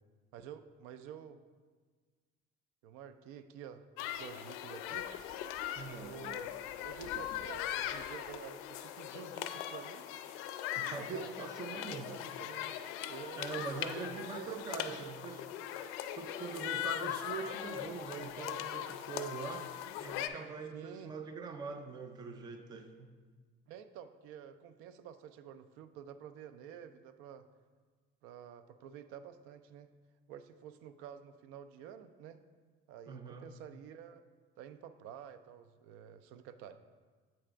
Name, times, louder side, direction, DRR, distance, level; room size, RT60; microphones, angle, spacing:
voice 1, 0.3-1.4 2.8-5.1 5.8-6.5 6.8-10.1 10.8-12.7 13.1-13.4 14.1-15.1 20.7-21.1 23.7-27.5 28.2-29.9 30.3-32.4 32.9-34.2 34.6-36.8, right 8 dB, 90° right, 11 dB, 0.4 m, -50 dB
sound 1, 4.0-20.3, left 11 dB, 80° left, 0.4 m, -40 dB
voice 2, 5.8-6.4 10.8-12.1 13.4-15.4 16.2-23.1 33.1-33.5, right 5 dB, 20° right, 6 dB, 0.3 m, -43 dB
7.7 x 3.3 x 4.9 m, 1.5 s
cardioid pair, 175°, 21 cm